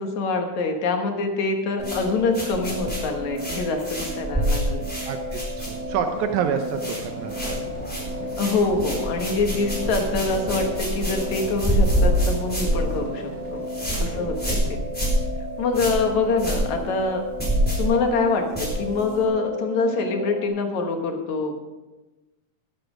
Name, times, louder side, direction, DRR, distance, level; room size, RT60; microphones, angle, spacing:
voice 1, 0.0-4.9 8.4-13.6 14.0-15.1 15.6-17.2 17.8-21.6, left 3 dB, 70° left, 4 dB, 2.7 m, -25 dB
sound 1, 1.8-6.1 6.4-7.0 7.3-19.2, right 1 dB, 5° left, 3.8 m, -27 dB
sound 2, 1.8-20.5, equal, 25° right, 0.9 m, -34 dB
voice 2, 5.1-7.6 14.0-14.3, right 7 dB, 80° right, 6 dB, 2.2 m, -28 dB
sound 3, 5.6-14.7, left 1 dB, 30° left, 3.7 m, -39 dB
13.0 x 12.0 x 5.0 m, 1.1 s
omnidirectional pair, 3.4 m